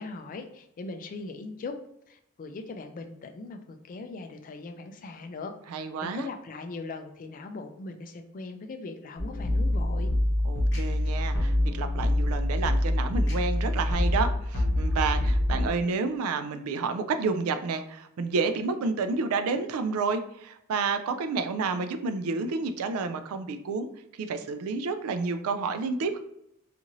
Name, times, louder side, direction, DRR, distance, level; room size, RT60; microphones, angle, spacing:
voice 1, 0.0-1.8 2.1-10.1, left 3 dB, 40° left, 6 dB, 0.3 m, -40 dB
voice 2, 5.7-6.3 10.5-23.9 24.2-26.2, right 4 dB, 80° right, 9 dB, 0.3 m, -30 dB
sound 1, 9.2-15.7, left 1 dB, 55° left, 0.9 m, -26 dB
2.6 x 2.4 x 2.9 m, 0.77 s
head